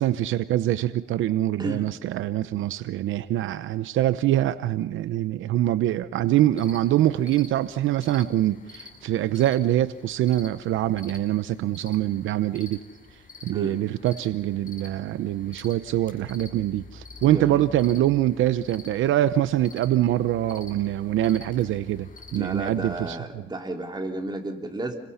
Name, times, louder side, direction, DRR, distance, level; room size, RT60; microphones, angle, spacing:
voice 1, 0.0-12.8 13.4-23.4, right 13 dB, 80° right, 13 dB, 0.8 m, -24 dB
voice 2, 1.6-1.9 13.5-13.8 17.2-17.7 22.3-24.9, right 2 dB, 20° right, 2 dB, 3.6 m, -32 dB
sound 1, 6.5-23.1, left 4 dB, 45° left, 6.6 m, -48 dB
29.5 x 23.0 x 5.7 m, 1.1 s
cardioid pair, 90°, 20 cm